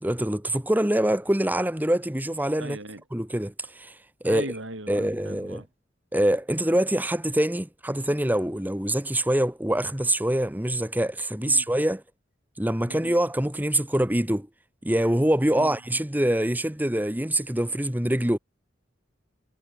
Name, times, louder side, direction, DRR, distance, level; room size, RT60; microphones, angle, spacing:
voice 1, 0.0-2.8 3.1-4.0 4.2-4.5 4.9-5.6 6.1-12.0 12.6-14.5 14.8-18.4, right 1 dB, 10° right, 1.5 m, -24 dB
voice 2, 2.6-3.0 4.2-5.6 11.4-11.7 12.9-13.1 15.6-15.7, right 2 dB, 90° right, 6.0 m, -38 dB
head